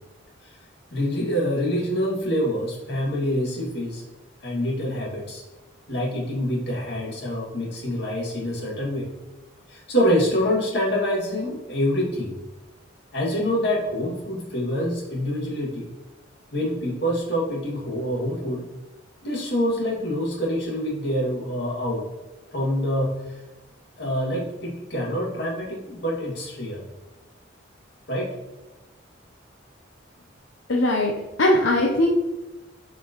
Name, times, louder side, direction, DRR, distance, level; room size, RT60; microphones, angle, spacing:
voice 1, 0.9-4.0 4.4-5.4 5.9-9.1 9.7-12.3 13.1-15.9 16.5-18.6 19.2-22.0 22.5-23.4 24.0-26.8 28.1-28.3, equal, 60° left, -3 dB, 2.3 m, -26 dB
voice 2, 30.7-31.1 31.4-32.1, left 1 dB, 75° left, 0 dB, 0.8 m, -19 dB
7.3 x 5.3 x 3.1 m, 1.1 s
head